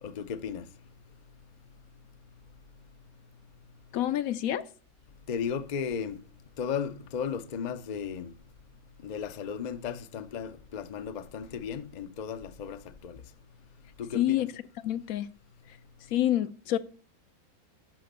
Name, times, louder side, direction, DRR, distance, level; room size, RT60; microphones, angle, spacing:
voice 1, 0.0-0.7 5.3-6.2 6.6-8.3 9.0-13.2 14.0-14.5, left 7 dB, 50° left, 0.5 m, -35 dB
voice 2, 3.9-4.6 14.1-15.3 15.7-15.8 16.1-16.8, left 12 dB, 75° left, 1.0 m, -28 dB
12.0 x 5.1 x 6.6 m
omnidirectional pair, 1.5 m